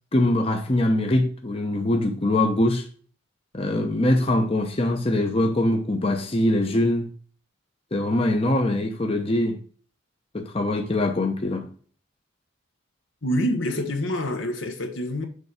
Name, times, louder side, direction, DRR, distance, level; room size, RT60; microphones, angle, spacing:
voice 1, 0.1-2.8 3.5-7.1 7.9-9.6 10.3-11.7, left 1 dB, 30° left, 0.8 m, -23 dB
voice 2, 13.2-15.3, equal, 75° left, 1.3 m, -26 dB
6.7 x 4.1 x 4.9 m
head